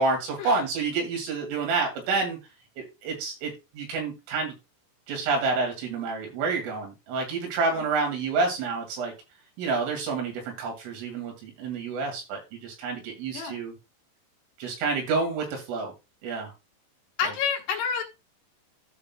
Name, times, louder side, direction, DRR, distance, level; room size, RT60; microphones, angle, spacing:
voice 1, 0.0-2.4 2.8-4.5 5.1-9.1 9.6-13.7 14.6-15.9 16.2-16.5, right 4 dB, 85° right, 2 dB, 5.1 m, -28 dB
voice 2, 17.2-18.0, left 6 dB, 65° left, 2 dB, 3.0 m, -29 dB
14.5 x 6.1 x 2.3 m, 0.25 s
omnidirectional pair, 5.6 m